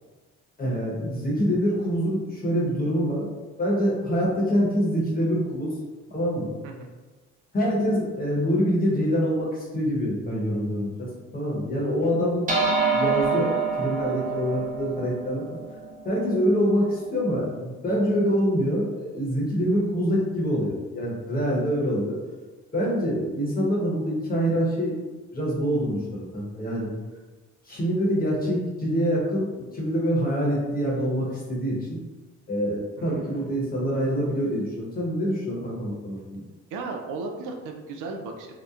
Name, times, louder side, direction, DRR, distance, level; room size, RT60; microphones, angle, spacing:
voice 1, 0.6-3.2 3.6-5.7 6.1-6.5 7.5-15.4 16.0-22.2 22.7-24.9 25.3-26.9 27.6-32.0 32.5-36.4, equal, 30° left, -4 dB, 0.9 m, -25 dB
sound 1, 12.5-17.1, right 5 dB, 25° right, 0.6 m, -27 dB
voice 2, 33.0-33.3 36.7-38.5, right 3 dB, 85° right, 3 dB, 0.5 m, -35 dB
2.8 x 2.1 x 2.3 m, 1.3 s
cardioid pair, 90°, 30 cm